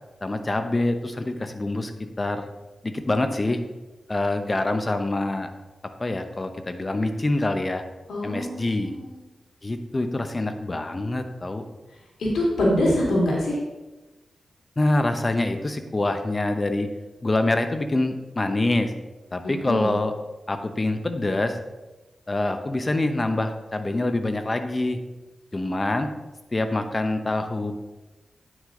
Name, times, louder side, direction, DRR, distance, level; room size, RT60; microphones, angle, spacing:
voice 1, 0.2-1.9 2.2-2.4 2.8-3.6 4.1-5.5 6.0-7.8 8.2-8.9 9.6-11.6 14.8-16.9 17.2-18.9 19.3-20.1 20.5-21.6 22.3-25.0 25.5-26.1 26.5-27.7, left 2 dB, 30° left, 7 dB, 0.9 m, -25 dB
voice 2, 8.1-9.1 12.2-13.6 19.4-19.9, left 1 dB, 90° left, -4 dB, 2.9 m, -24 dB
9.5 x 6.2 x 3.8 m, 1.1 s
cardioid pair, 70°, 0 cm